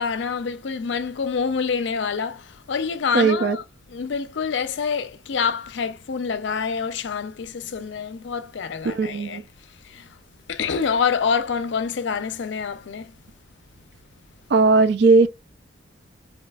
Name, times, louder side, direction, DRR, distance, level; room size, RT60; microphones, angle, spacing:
voice 1, 0.0-3.6 3.9-9.4 9.8-10.1 10.5-13.1, left 6 dB, 70° left, 0.4 m, -26 dB
voice 2, 3.1-3.6 8.8-9.4 14.5-15.3, right 4 dB, 60° right, 0.4 m, -17 dB
4.1 x 2.8 x 2.3 m
head